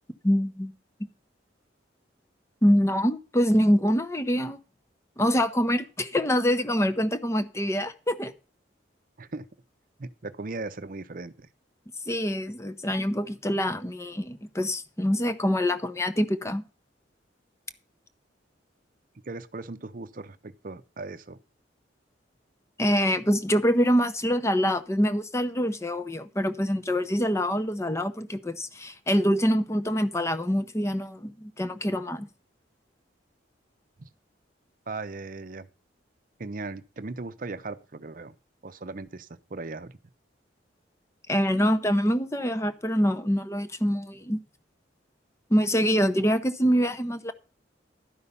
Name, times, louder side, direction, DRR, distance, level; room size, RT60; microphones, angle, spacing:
voice 1, 0.2-0.7 2.6-4.6 5.2-8.3 12.1-16.6 22.8-32.3 41.3-44.4 45.5-47.3, equal, 15° left, 0.7 m, -25 dB
voice 2, 10.0-11.5 19.2-21.4 34.0-34.1 34.9-35.7 36.4-38.3 38.6-40.0, right 3 dB, 45° right, 0.7 m, -38 dB
12.0 x 5.5 x 6.9 m
head